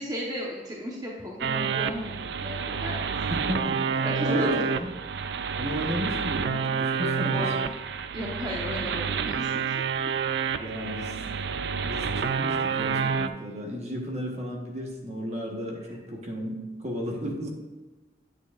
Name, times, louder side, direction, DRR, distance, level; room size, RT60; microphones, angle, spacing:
voice 1, 0.0-3.2 4.0-4.6 6.9-7.6 8.1-9.8 10.8-10.9, equal, 20° right, -3 dB, 1.1 m, -34 dB
sound 1, 1.4-13.3, right 6 dB, 70° right, 0.4 m, -29 dB
voice 2, 3.3-4.9 5.5-7.5 10.6-11.2 11.8-17.5, equal, 40° right, 0 dB, 1.3 m, -34 dB
8.9 x 8.4 x 2.5 m, 1.2 s
head